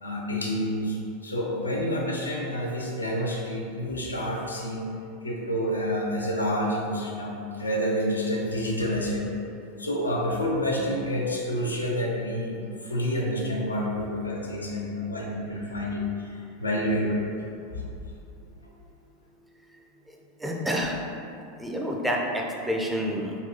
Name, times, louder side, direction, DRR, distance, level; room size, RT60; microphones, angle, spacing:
voice 1, 0.0-4.9 5.2-9.3 9.7-17.2 17.7-17.8, equal, 90° left, -2 dB, 0.5 m, -28 dB
voice 2, 20.1-21.0 21.4-23.4, equal, 5° right, -1 dB, 0.4 m, -29 dB
3.9 x 2.3 x 2.8 m, 2.6 s
figure-of-eight pair, 85°, 0 cm